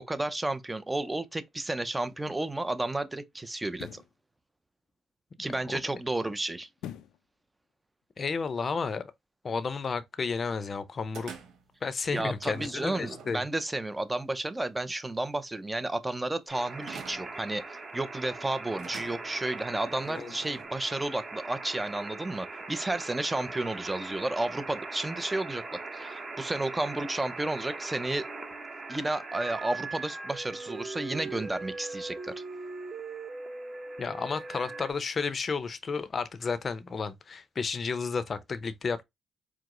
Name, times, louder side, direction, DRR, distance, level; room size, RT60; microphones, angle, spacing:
voice 1, 0.0-4.0 5.4-6.7 12.1-28.3 28.9-32.3, right 2 dB, 15° right, 0.5 m, -32 dB
sound 1, 1.8-2.0 3.7-4.2 6.8-7.3 7.7-7.8, left 10 dB, 85° left, 0.4 m, -42 dB
voice 2, 5.4-5.8 8.2-9.0 9.4-11.3 11.8-13.5 20.1-20.3 34.0-39.0, left 5 dB, 40° left, 0.6 m, -32 dB
sound 2, 11.1-11.7 12.3-13.8 16.8-17.5 18.8-20.7, right 5 dB, 80° right, 1.3 m, -46 dB
sound 3, 16.5-34.9, right 3 dB, 30° right, 0.9 m, -40 dB
4.7 x 2.0 x 3.7 m
cardioid pair, 90°, 0 cm